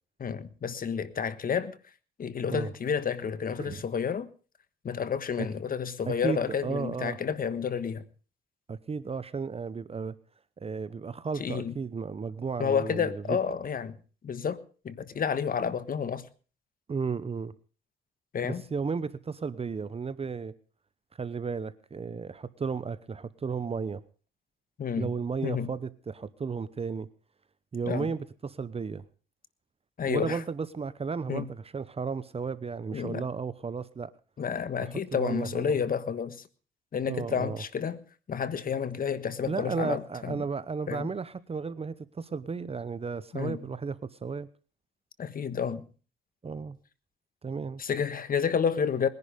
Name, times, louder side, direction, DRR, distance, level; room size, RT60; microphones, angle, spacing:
voice 1, 0.2-1.8 2.2-4.3 4.8-8.0 11.4-11.7 12.6-14.0 14.2-16.3 18.3-18.6 24.8-25.1 25.4-25.7 27.8-28.1 30.0-30.4 31.3-31.5 32.9-33.2 34.4-36.5 36.9-38.0 38.3-40.4 40.9-41.1 43.3-43.6 45.2-45.9 47.8-49.1, left 7 dB, 45° left, 1.4 m, -30 dB
voice 2, 6.1-7.2 8.7-10.2 10.6-13.4 16.9-17.5 18.4-20.5 21.2-24.0 25.0-27.1 27.7-29.0 30.0-34.1 34.8-35.8 37.1-37.6 39.4-44.5 46.4-46.8 47.4-47.8, right 5 dB, 30° right, 0.9 m, -34 dB
20.5 x 11.0 x 5.1 m
cardioid pair, 90°, 20 cm